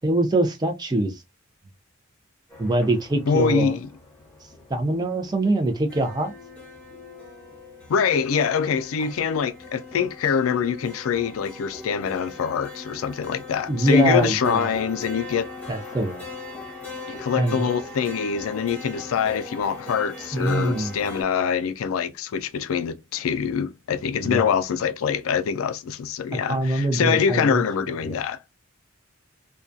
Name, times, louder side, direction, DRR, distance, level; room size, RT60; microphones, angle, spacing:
voice 1, 0.0-1.2 2.6-3.8 4.7-6.3 9.0-9.1 13.7-14.7 15.7-16.2 17.3-17.7 20.3-21.0 24.2-24.5 26.5-27.6 28.0-28.2, right 1 dB, 20° right, 0.4 m, -24 dB
sound 1, 2.5-21.2, left 3 dB, 5° left, 0.9 m, -40 dB
voice 2, 3.3-3.9 7.9-15.5 17.1-28.5, left 6 dB, 85° left, 0.4 m, -24 dB
2.3 x 2.2 x 2.5 m
head